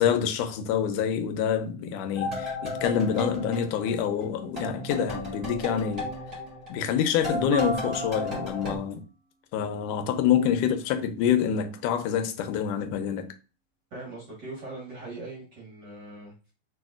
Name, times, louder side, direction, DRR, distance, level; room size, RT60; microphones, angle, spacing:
voice 1, 0.0-6.1 6.7-9.0 9.5-13.3, left 8 dB, 90° left, 2.2 m, -26 dB
sound 1, 2.2-4.3 4.6-8.8, left 2 dB, 15° right, 1.3 m, -34 dB
sound 2, 7.5-8.8, right 3 dB, 75° right, 1.5 m, -39 dB
voice 2, 13.9-16.3, right 2 dB, 45° right, 1.5 m, -40 dB
5.1 x 4.2 x 2.3 m
omnidirectional pair, 3.5 m